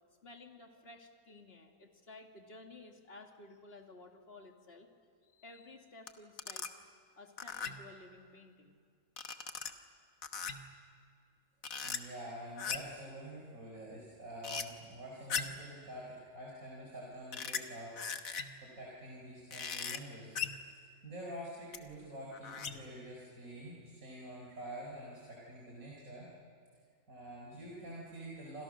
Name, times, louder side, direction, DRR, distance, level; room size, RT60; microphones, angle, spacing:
voice 1, 0.2-4.9 5.2-6.7 7.1-8.8, left 2 dB, 45° left, 3 dB, 2.4 m, -54 dB
sound 1, 6.1-6.2 6.4-6.7 7.4-7.9 9.2-9.7 10.2-10.7 11.6-12.0 12.6-13.0 14.4-14.6 15.3-15.7 17.3-17.6 18.0-18.6 19.5-20.0 20.3-20.7 21.7-21.8 22.3-22.9, left 6 dB, 75° left, 1.7 m, -39 dB
voice 2, 11.8-18.0 18.6-20.3 20.8-26.3 27.1-28.6, right 1 dB, 80° right, -3 dB, 5.3 m, -47 dB
29.0 x 26.5 x 6.4 m, 2.2 s
omnidirectional pair, 1.4 m